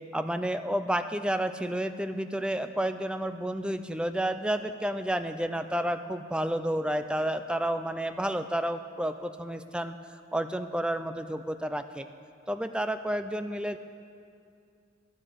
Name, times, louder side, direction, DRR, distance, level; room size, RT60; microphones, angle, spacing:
voice 1, 0.1-10.0 10.3-12.1 12.5-13.8, right 1 dB, 5° right, 9 dB, 0.3 m, -30 dB
13.0 x 9.7 x 6.4 m, 2.4 s
head